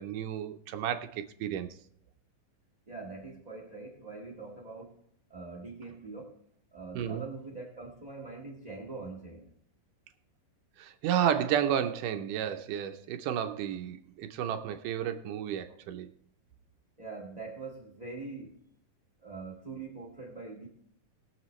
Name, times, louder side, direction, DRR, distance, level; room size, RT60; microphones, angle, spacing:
voice 1, 0.0-1.7 6.9-7.2 10.8-16.1, right 9 dB, 80° right, 8 dB, 2.1 m, -32 dB
voice 2, 2.9-5.0 5.3-6.3 6.7-9.5 15.7-15.8 17.0-18.6 19.2-20.7, right 3 dB, 30° right, 1 dB, 0.7 m, -43 dB
20.5 x 7.5 x 3.1 m, 0.66 s
omnidirectional pair, 4.0 m